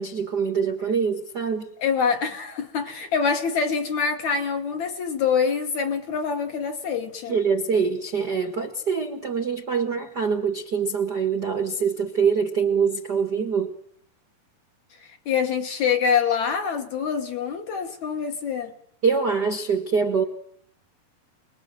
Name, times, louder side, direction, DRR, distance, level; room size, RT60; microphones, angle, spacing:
voice 1, 0.0-1.7 7.3-13.8 19.0-20.2, right 6 dB, 55° right, 1.2 m, -24 dB
voice 2, 1.8-7.4 15.3-18.7, left 6 dB, 60° left, 2.3 m, -25 dB
27.5 x 21.0 x 7.6 m
omnidirectional pair, 4.5 m